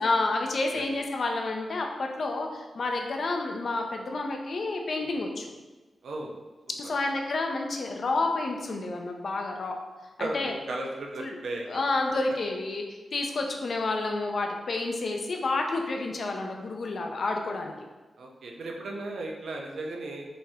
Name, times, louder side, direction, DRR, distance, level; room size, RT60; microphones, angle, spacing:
voice 1, 0.0-5.4 6.7-9.8 10.2-10.5 11.2-11.4 11.7-17.7, left 2 dB, 50° left, 3 dB, 0.5 m, -29 dB
voice 2, 10.2-11.8 18.2-20.3, right 2 dB, 85° right, 0 dB, 0.7 m, -35 dB
5.1 x 3.6 x 2.8 m, 1.2 s
wide cardioid pair, 160°, 0 cm